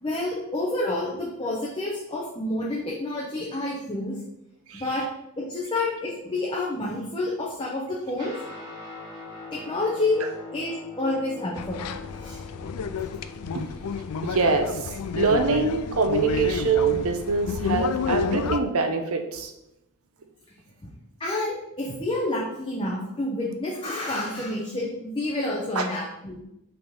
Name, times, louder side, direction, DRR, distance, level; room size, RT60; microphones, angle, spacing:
voice 1, 0.0-4.2 4.7-5.0 5.4-8.3 9.5-11.8 12.1-12.4 20.8-20.9 21.2-26.4, left 2 dB, 20° left, -4 dB, 0.9 m, -29 dB
Guitar, 8.2-17.8, left 3 dB, 20° right, 1.7 m, -44 dB
sound 1, 11.6-18.6, left 5 dB, 85° left, 0.4 m, -30 dB
voice 2, 14.2-14.7 15.2-19.5 25.8-25.9, right 4 dB, 70° right, 6 dB, 0.7 m, -24 dB
5.6 x 4.0 x 5.2 m, 0.86 s
head